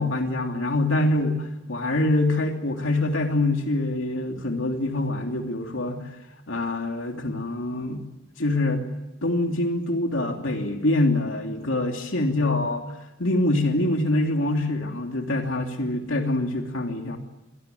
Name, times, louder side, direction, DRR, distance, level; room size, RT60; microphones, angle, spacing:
voice 1, 0.0-6.1 6.5-8.0 8.4-8.9 9.2-12.9 13.2-17.2, left 2 dB, 70° left, 3 dB, 3.1 m, -25 dB
27.0 x 18.5 x 9.4 m, 0.98 s
head